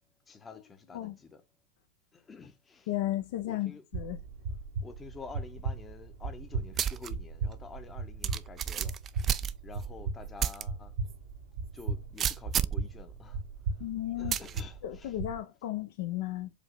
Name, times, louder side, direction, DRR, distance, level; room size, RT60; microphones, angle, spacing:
voice 1, 0.3-1.4 2.1-2.9 3.4-3.8 4.8-8.9 9.6-10.9 11.7-13.4 14.2-15.2, left 4 dB, 20° left, 0.7 m, -48 dB
voice 2, 2.9-4.2 13.8-14.4 14.8-16.5, left 14 dB, 50° left, 0.4 m, -34 dB
sound 1, 3.9-15.4, right 4 dB, 55° right, 0.9 m, -37 dB
sound 2, 6.8-7.1 7.5-7.6 8.2-9.9 10.4-10.6 11.1-11.2 12.2-12.9 14.3-14.6, right 9 dB, 25° right, 0.3 m, -30 dB
4.9 x 2.8 x 3.3 m
figure-of-eight pair, 90°, 0 cm